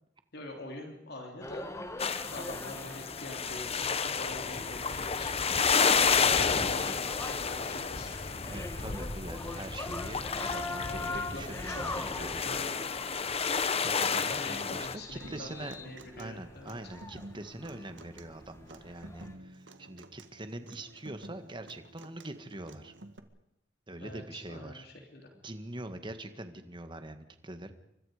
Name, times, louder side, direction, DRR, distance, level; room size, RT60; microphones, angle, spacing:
voice 1, 0.3-1.7 2.3-5.5 6.0-8.3 10.5-12.8 13.9-15.5 15.8-16.9 24.0-25.3, left 2 dB, 60° left, 2 dB, 3.3 m, -45 dB
sound 1, 1.4-19.3, left 2 dB, 15° left, 1.9 m, -43 dB
sound 2, 2.0-15.0, left 5 dB, 35° left, 1.0 m, -31 dB
voice 2, 8.4-12.4 13.8-15.8 16.2-22.9 23.9-24.9 25.4-27.7, right 1 dB, 25° right, 8 dB, 1.9 m, -43 dB
Human voice / Acoustic guitar, 15.2-23.2, right 2 dB, 75° right, 2.0 m, -52 dB
29.5 x 24.5 x 5.1 m, 0.80 s
head